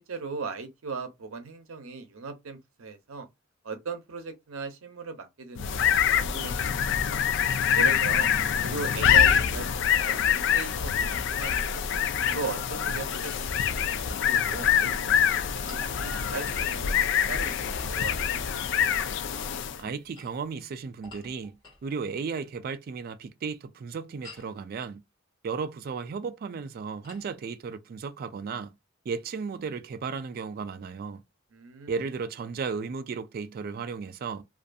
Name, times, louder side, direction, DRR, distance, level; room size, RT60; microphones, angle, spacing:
voice 1, 0.1-3.3 3.6-5.9 6.2-7.2 7.7-8.3 8.6-11.1 11.3-11.9 12.3-13.8 14.2-14.9 15.2-18.5 31.5-32.0, right 4 dB, 85° right, 0.6 m, -38 dB
sound 1, 5.6-19.9, left 8 dB, 60° left, 0.3 m, -25 dB
sound 2, 15.7-17.5 19.9-21.9 24.2-24.6 27.0-27.3, left 2 dB, 25° left, 1.3 m, -51 dB
voice 2, 19.8-21.6 21.8-25.0 25.4-28.7 29.1-31.2 31.9-34.4, right 5 dB, 45° right, 0.3 m, -34 dB
2.5 x 2.5 x 2.3 m
head